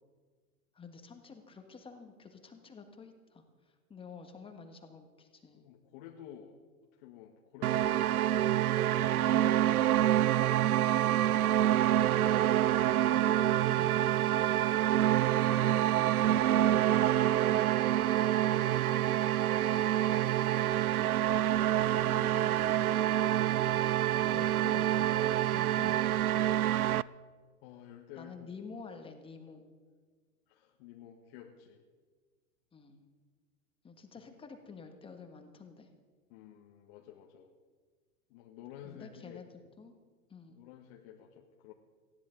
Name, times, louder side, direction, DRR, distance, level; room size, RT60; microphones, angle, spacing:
voice 1, 0.7-5.6 9.4-10.1 10.5-11.0 12.9-14.6 15.1-17.8 20.3-20.7 21.9-22.6 24.3-25.1 25.5-26.5 28.1-29.7 32.7-33.0 33.8-35.9 38.8-39.9 40.3-40.6, left 4 dB, 10° left, 6 dB, 1.5 m, -50 dB
voice 2, 5.5-6.5 7.0-8.5 9.0-9.9 11.3-11.7 18.3-19.4 27.6-28.5 30.5-31.8 34.2-34.3 36.3-37.5 38.3-39.4 40.5-41.7, left 10 dB, 40° left, 2 dB, 1.5 m, -51 dB
sound 1, 7.6-27.0, right 12 dB, 75° right, 0.5 m, -27 dB
19.0 x 15.5 x 3.9 m, 1.5 s
figure-of-eight pair, 110°, 44 cm